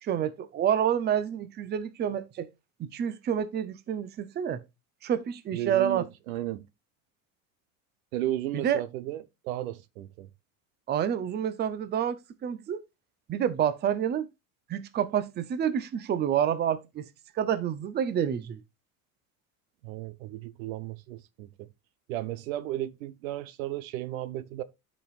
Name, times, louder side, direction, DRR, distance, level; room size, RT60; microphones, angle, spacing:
voice 1, 0.0-2.5 2.8-4.6 5.0-6.0 8.5-8.8 10.9-12.8 13.3-14.3 14.7-17.1 17.3-18.6, right 9 dB, 25° right, 0.6 m, -28 dB
voice 2, 5.5-6.7 8.1-10.3 19.8-21.7 22.1-24.6, right 14 dB, 90° right, 0.9 m, -34 dB
12.5 x 5.2 x 2.4 m
supercardioid pair, 130°, 40 cm